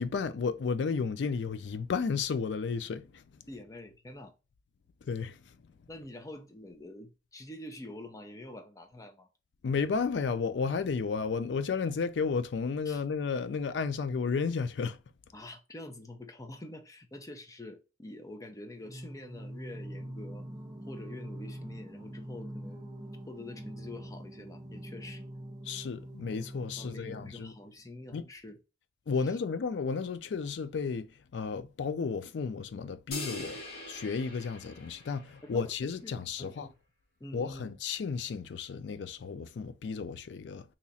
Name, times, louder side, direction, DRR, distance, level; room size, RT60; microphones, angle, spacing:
voice 1, 0.0-3.2 5.0-5.4 9.6-15.0 25.7-27.5 28.1-28.2 29.1-31.1 31.3-33.6 33.9-36.7 37.3-40.6, left 5 dB, 85° left, 0.4 m, -33 dB
voice 2, 3.5-4.3 5.9-9.3 12.9-13.0 15.3-20.4 20.9-22.9 23.3-25.2 26.8-28.6 29.2-29.4 35.4-35.7 36.0-36.7 37.2-37.8, left 1 dB, 20° left, 0.6 m, -46 dB
Singing, 18.8-27.7, right 1 dB, 20° right, 0.6 m, -44 dB
sound 1, 33.1-35.7, left 1 dB, 60° left, 1.5 m, -42 dB
2.9 x 2.4 x 4.1 m
head